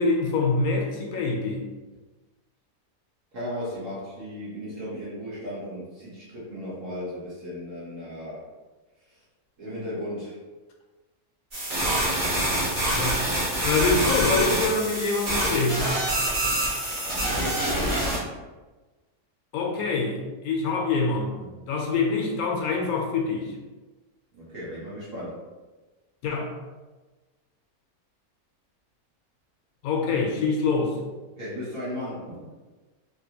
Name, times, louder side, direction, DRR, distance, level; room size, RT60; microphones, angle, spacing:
voice 1, 0.0-1.6 12.9-13.2 13.6-15.9 19.5-23.5 26.2-26.5 29.8-31.0, left 3 dB, 80° left, 1 dB, 1.1 m, -25 dB
voice 2, 3.3-8.4 9.1-9.2 9.6-10.4 17.0-18.2 24.3-25.4 31.4-32.3, left 1 dB, 60° right, -10 dB, 1.3 m, -35 dB
sound 1, 11.5-18.2, right 1 dB, 35° right, 1.2 m, -26 dB
3.2 x 2.6 x 2.8 m, 1.2 s
omnidirectional pair, 1.6 m